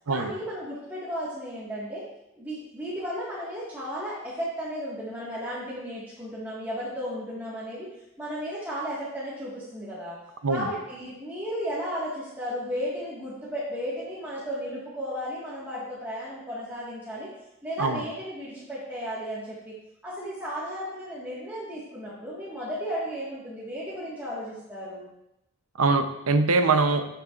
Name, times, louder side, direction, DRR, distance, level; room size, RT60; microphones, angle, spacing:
voice 1, 0.1-2.0 2.3-7.9 8.2-10.2 10.5-17.3 17.6-19.7 20.0-25.1, equal, 10° right, -9 dB, 1.7 m, -34 dB
voice 2, 25.8-27.1, right 3 dB, 85° right, 8 dB, 0.7 m, -23 dB
12.5 x 6.8 x 2.5 m, 0.87 s
head